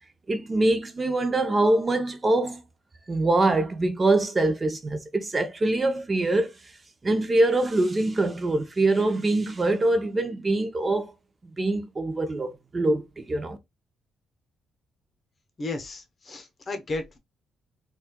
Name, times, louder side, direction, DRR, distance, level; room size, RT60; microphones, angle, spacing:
voice 1, 0.3-2.6 3.1-6.5 7.0-11.1 11.6-13.6, right 2 dB, 30° right, 0.6 m, -24 dB
voice 2, 15.6-17.2, left 2 dB, 40° left, 0.8 m, -34 dB
4.2 x 2.3 x 2.2 m
cardioid pair, 90°, 0 cm